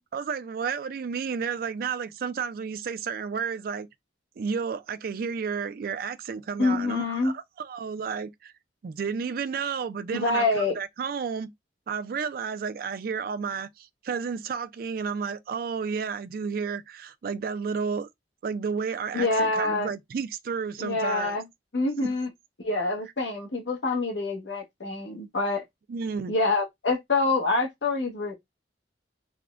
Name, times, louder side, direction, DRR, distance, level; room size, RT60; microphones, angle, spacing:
voice 1, 0.1-3.9 4.4-8.5 8.8-11.5 11.9-18.1 18.4-21.3 22.0-22.1 25.9-26.3, right 6 dB, 55° right, 0.3 m, -32 dB
voice 2, 6.6-7.3 10.1-10.8 19.1-19.9 20.8-21.4 21.7-22.3 22.6-25.6 26.3-28.3, left 3 dB, 90° left, 1.0 m, -26 dB
3.5 x 2.1 x 2.4 m
head